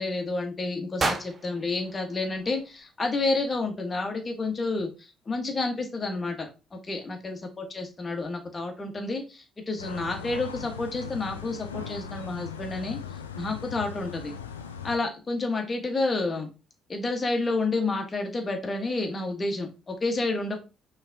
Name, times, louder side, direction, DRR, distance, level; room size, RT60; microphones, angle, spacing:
voice 1, 0.0-13.0 13.3-14.3 14.8-16.5 16.9-20.6, left 3 dB, 30° left, 4 dB, 1.4 m, -30 dB
sound 1, 1.0-3.1, right 3 dB, 35° right, 0.8 m, -33 dB
sound 2, 9.8-15.0, left 7 dB, 90° left, 0.4 m, -39 dB
5.5 x 3.4 x 2.8 m, 0.30 s
hypercardioid pair, 50°, 0 cm